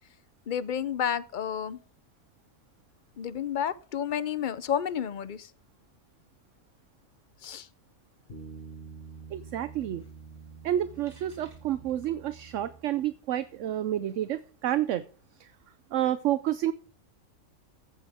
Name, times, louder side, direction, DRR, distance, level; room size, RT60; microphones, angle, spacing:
voice 1, 0.5-1.8 3.2-5.5 7.4-7.7, left 8 dB, 50° left, 0.6 m, -31 dB
sound 1, 8.3-13.2, right 5 dB, 40° right, 2.3 m, -47 dB
voice 2, 9.3-10.0 10.6-15.0 15.4-15.5 15.9-16.7, right 12 dB, 65° right, 0.9 m, -29 dB
14.5 x 8.9 x 3.5 m
omnidirectional pair, 1.4 m